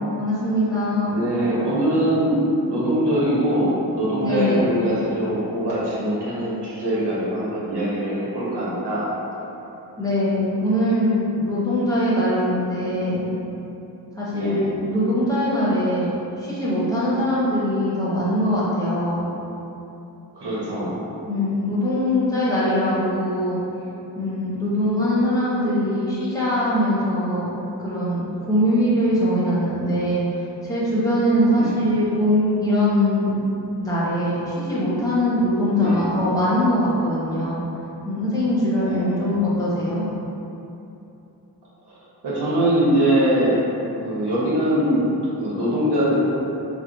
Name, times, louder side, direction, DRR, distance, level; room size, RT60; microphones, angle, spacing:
voice 1, 0.2-1.1 4.2-4.8 10.0-13.3 14.2-16.1 16.4-19.3 21.3-23.6 24.1-27.5 27.8-30.2 30.6-33.4 33.8-37.6 38.0-40.1, left 1 dB, 10° left, -9 dB, 0.9 m, -22 dB
voice 2, 1.1-9.1 14.3-14.7 20.3-20.9 31.5-31.8 35.7-36.0 38.7-39.3 41.9-42.0 42.2-43.7 44.0-46.2, right 1 dB, 75° right, -7 dB, 1.1 m, -22 dB
3.4 x 2.1 x 3.9 m, 2.9 s
wide cardioid pair, 100°, 41 cm